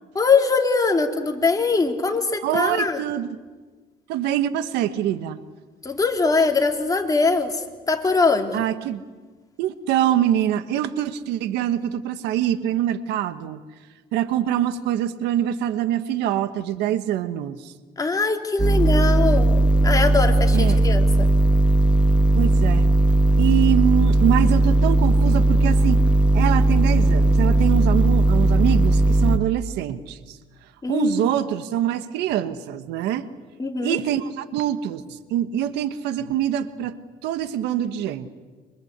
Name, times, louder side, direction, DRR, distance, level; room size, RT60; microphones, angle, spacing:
voice 1, 0.1-3.0 5.8-8.6 18.0-21.3 30.8-31.4 33.6-34.0, left 4 dB, 20° left, 3 dB, 3.1 m, -22 dB
voice 2, 2.4-3.3 4.1-5.4 8.5-9.0 9.6-13.6 14.1-17.7 20.5-20.9 22.3-22.9 23.4-26.0 26.3-30.4 30.9-33.3 33.8-37.0 37.2-38.3, right 11 dB, 90° right, 11 dB, 1.5 m, -24 dB
sound 1, 18.6-29.4, right 2 dB, 5° right, 1.7 m, -17 dB
27.0 x 25.5 x 8.2 m, 1.3 s
cardioid pair, 110°, 17 cm